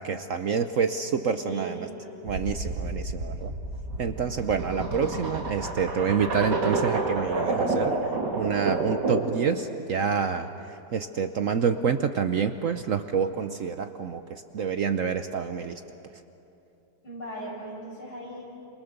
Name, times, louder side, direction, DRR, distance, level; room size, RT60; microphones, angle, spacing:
voice 1, 0.0-1.9 2.2-3.5 4.0-8.0 8.3-15.8, right 6 dB, 60° right, 8 dB, 1.0 m, -28 dB
voice 2, 1.2-2.2 17.0-18.4, right 1 dB, 70° left, -5 dB, 8.7 m, -39 dB
sound 1, 2.3-9.4, right 3 dB, 75° right, 3.2 m, -29 dB
28.0 x 27.0 x 6.7 m, 2.9 s
omnidirectional pair, 1.9 m